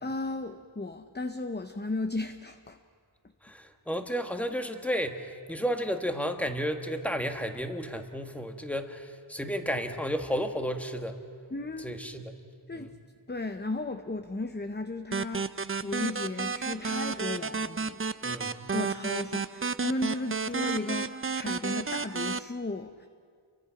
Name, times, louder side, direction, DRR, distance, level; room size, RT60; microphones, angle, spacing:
voice 1, 0.0-2.8 11.5-12.3 12.7-13.0 13.3-18.0 18.7-23.1, left 2 dB, 20° left, 0.8 m, -35 dB
voice 2, 3.4-11.2 11.8-12.4 12.7-12.9 18.2-18.7, equal, 5° left, 1.7 m, -32 dB
sound 1, 15.1-22.4, right 4 dB, 25° right, 0.5 m, -32 dB
30.0 x 23.5 x 5.9 m
wide cardioid pair, 80°, 48 cm